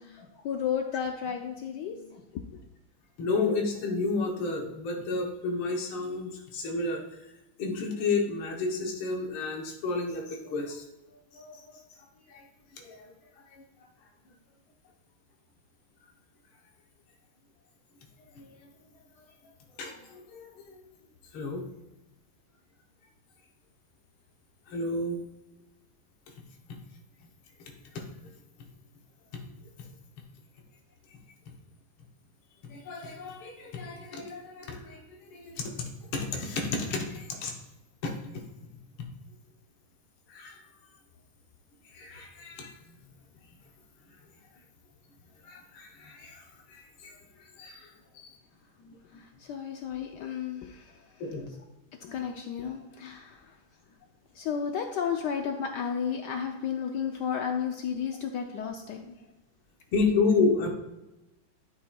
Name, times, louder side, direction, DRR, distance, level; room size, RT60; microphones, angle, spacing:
voice 1, 0.0-2.6 49.1-51.1 52.0-53.6 54.3-59.2, left 7 dB, 75° left, 4 dB, 1.0 m, -33 dB
voice 2, 3.2-7.0 7.6-10.8 11.3-11.6 12.3-12.4 12.8-13.1 13.5-13.6 19.8-20.8 21.3-21.7 24.7-25.2 28.0-28.1 29.3-29.4 32.6-35.0 35.3-37.5 38.0-38.1 39.0-39.1 40.3-40.6 41.9-42.7 45.4-46.4 46.7-47.2 47.6-47.9 48.2-48.3 48.8-49.2 51.2-51.5 52.1-52.2 59.9-60.7, left 3 dB, 90° left, 1 dB, 1.8 m, -31 dB
11.5 x 5.6 x 2.2 m, 0.98 s
omnidirectional pair, 2.2 m